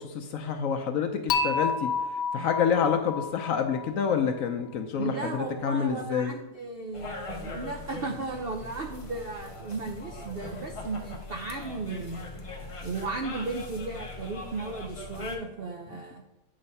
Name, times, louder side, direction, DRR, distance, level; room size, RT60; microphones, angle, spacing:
voice 1, 0.0-1.9 2.3-6.3, left 7 dB, 65° left, 6 dB, 0.9 m, -28 dB
Dishes pots and pans / Chink clink, 1.3-4.4, left 5 dB, 85° left, 1.2 m, -30 dB
voice 2, 5.0-12.3 12.8-16.2, right 3 dB, 65° right, 2 dB, 0.5 m, -35 dB
sound 1, 6.9-15.4, left 2 dB, 40° left, 0.4 m, -41 dB
8.8 x 3.3 x 5.3 m, 0.93 s
omnidirectional pair, 1.8 m